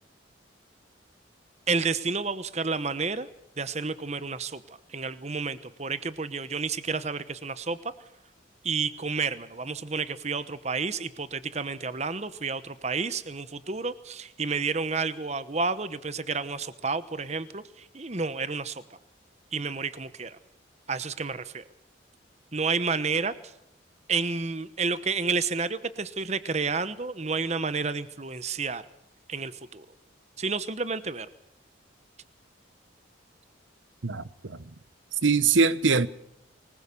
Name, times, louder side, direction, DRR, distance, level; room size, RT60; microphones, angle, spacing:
voice 1, 1.7-3.3 3.6-7.9 8.6-18.8 19.5-20.4 20.9-21.6 22.5-23.5 24.1-28.8 29.3-29.9 30.4-31.3, right 4 dB, 35° right, 1.0 m, -30 dB
voice 2, 34.0-34.6 35.2-36.1, right 4 dB, 85° right, 1.0 m, -22 dB
24.5 x 20.0 x 7.0 m
head